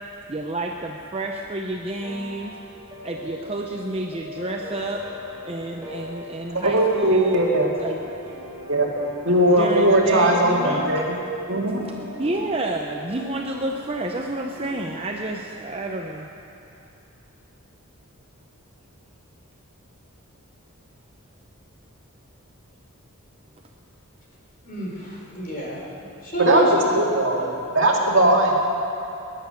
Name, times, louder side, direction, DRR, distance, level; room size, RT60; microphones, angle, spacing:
voice 1, 0.3-2.5 3.0-5.0 5.5-7.5 7.8-8.0 9.6-10.9 11.8-16.3, right 2 dB, 25° right, 1 dB, 0.7 m, -29 dB
sound 1, 2.0-15.3, left 1 dB, 10° right, 4.9 m, -40 dB
voice 2, 6.5-7.7 8.7-8.9 9.2-11.1 11.5-11.8 26.4-27.5 27.7-28.6, right 1 dB, 60° right, -2 dB, 2.3 m, -19 dB
voice 3, 24.6-25.8 26.2-26.9 27.1-27.5, right 1 dB, 40° left, -3 dB, 3.7 m, -28 dB
20.5 x 10.5 x 6.7 m, 2.8 s
head